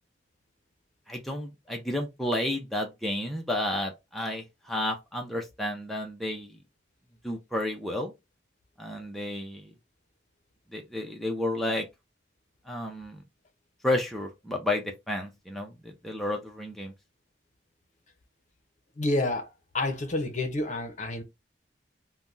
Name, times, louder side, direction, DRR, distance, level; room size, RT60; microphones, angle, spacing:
voice 1, 1.1-6.6 7.2-8.1 8.8-9.7 10.7-11.8 12.7-13.2 13.8-16.9, left 1 dB, ahead, 0.6 m, -31 dB
voice 2, 19.0-19.5 19.7-21.2, left 2 dB, 45° left, 0.7 m, -29 dB
3.4 x 2.2 x 2.5 m
head